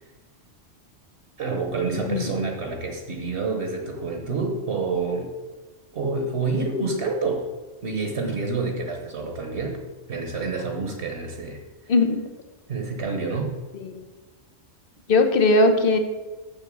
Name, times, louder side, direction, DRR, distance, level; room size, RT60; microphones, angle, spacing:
voice 1, 1.4-5.3 5.9-7.4 7.8-11.6 12.7-13.6, right 4 dB, 60° right, 3 dB, 1.4 m, -28 dB
voice 2, 1.9-2.3 11.9-12.3 13.8-14.0 15.1-16.0, left 2 dB, 50° left, 7 dB, 1.1 m, -19 dB
7.1 x 6.8 x 7.5 m, 1.2 s
omnidirectional pair, 1.3 m